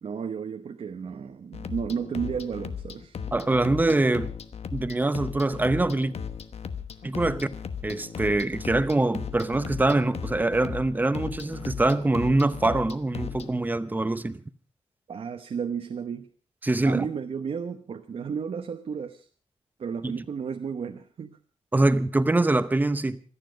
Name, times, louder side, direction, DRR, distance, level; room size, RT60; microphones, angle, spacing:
voice 1, 0.0-3.2 15.1-16.3 16.8-19.3 19.8-21.4, right 6 dB, 55° right, 0.9 m, -33 dB
sound 1, 1.5-13.5, left 7 dB, 60° left, 1.1 m, -37 dB
voice 2, 3.3-4.3 4.7-6.1 7.0-7.5 7.8-14.4 16.6-17.1 20.0-20.2 21.7-23.2, right 2 dB, 15° right, 0.7 m, -24 dB
26.0 x 10.0 x 5.1 m
wide cardioid pair, 180°, 12 cm